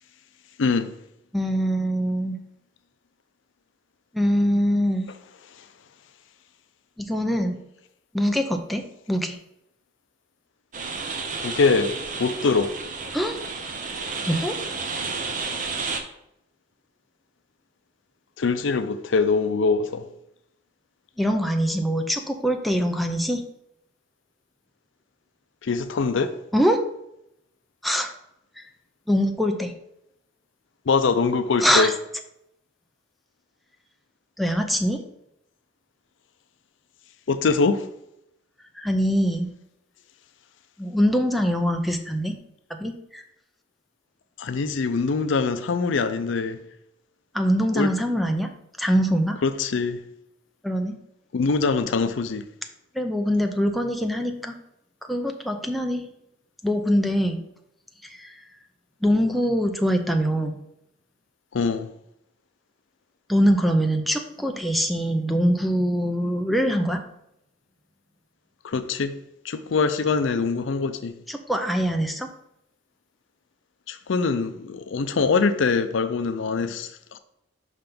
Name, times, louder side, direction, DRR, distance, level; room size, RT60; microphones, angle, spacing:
voice 1, 0.6-0.9 11.4-12.7 18.4-20.0 25.6-26.3 30.9-31.9 37.3-37.9 44.4-46.6 47.8-47.9 49.4-50.0 51.3-52.4 61.5-61.9 68.6-69.1 69.4-71.1 73.9-77.2, left 4 dB, 70° left, 0.5 m, -23 dB
voice 2, 1.3-2.4 4.1-5.1 7.0-7.6 8.1-9.4 13.1-13.4 14.3-14.6 21.2-23.4 26.5-26.8 27.8-28.1 29.1-29.7 31.6-31.9 34.4-35.0 38.8-39.5 40.8-42.4 42.7-43.2 47.3-48.5 48.8-49.4 50.6-51.0 52.9-54.6 55.1-56.1 56.6-57.4 58.1-58.3 59.0-60.6 63.3-67.0 71.3-72.3, equal, ahead, 0.5 m, -23 dB
sound 1, 10.7-16.0, right 4 dB, 45° right, 0.8 m, -31 dB
5.7 x 3.6 x 5.2 m
head